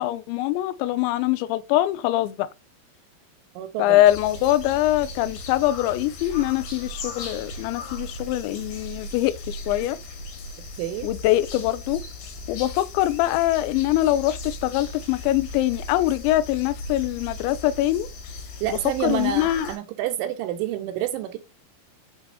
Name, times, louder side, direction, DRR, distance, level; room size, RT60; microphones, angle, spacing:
voice 1, 0.0-2.5 3.8-10.0 11.0-12.0 12.5-18.1 18.7-19.7, left 14 dB, 80° left, 2.7 m, -23 dB
voice 2, 3.6-4.0 10.8-11.1 18.6-21.4, right 13 dB, 75° right, 3.2 m, -28 dB
sound 1, 4.1-19.8, left 2 dB, 60° left, 3.8 m, -37 dB
8.4 x 5.1 x 4.2 m
omnidirectional pair, 5.9 m